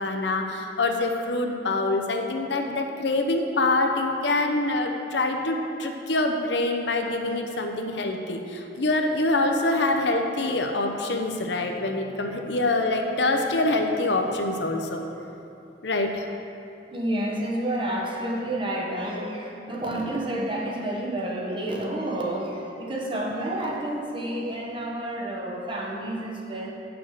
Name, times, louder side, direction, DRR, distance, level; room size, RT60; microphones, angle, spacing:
voice 1, 0.0-15.0 15.8-16.3, left 2 dB, 70° left, 3 dB, 0.8 m, -25 dB
voice 2, 16.9-26.7, right 1 dB, 30° right, -2 dB, 1.1 m, -30 dB
8.2 x 6.0 x 6.5 m, 2.7 s
head